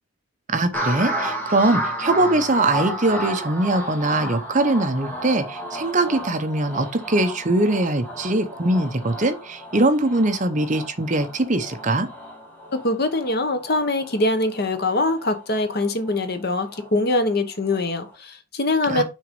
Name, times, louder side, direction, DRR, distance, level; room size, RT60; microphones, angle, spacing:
voice 1, 0.5-12.1 18.9-19.0, right 2 dB, 35° right, 0.8 m, -22 dB
sound 1, 0.7-17.4 17.7-18.1, right 1 dB, 10° left, 1.8 m, -33 dB
voice 2, 12.7-19.0, left 2 dB, 50° left, 1.1 m, -23 dB
6.4 x 3.9 x 5.3 m
head